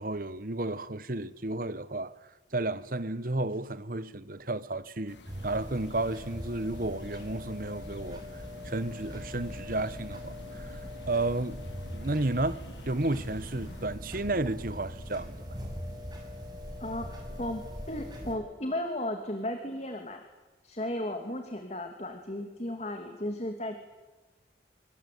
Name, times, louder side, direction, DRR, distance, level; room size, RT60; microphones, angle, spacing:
voice 1, 0.0-2.2 2.5-5.2 5.4-8.2 8.6-10.7 11.1-11.6 11.9-15.3, right 2 dB, 50° right, 1.2 m, -32 dB
sound 1, 5.1-13.9, left 1 dB, 80° left, 2.6 m, -51 dB
sound 2, 5.3-18.3, equal, 25° right, 6.6 m, -41 dB
voice 2, 17.9-20.2 20.6-23.8, left 1 dB, 35° left, 2.7 m, -35 dB
27.0 x 24.0 x 8.6 m
head